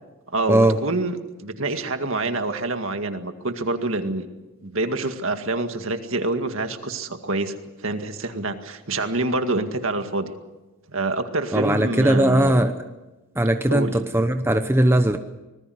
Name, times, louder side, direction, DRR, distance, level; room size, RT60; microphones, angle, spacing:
voice 1, 0.3-4.3 4.6-7.5 7.8-10.3 10.9-12.6 13.7-13.9, right 2 dB, 60° right, 7 dB, 2.0 m, -26 dB
voice 2, 11.5-12.8 13.4-15.2, right 1 dB, 10° right, 7 dB, 0.8 m, -19 dB
25.5 x 20.0 x 8.0 m, 1.1 s
head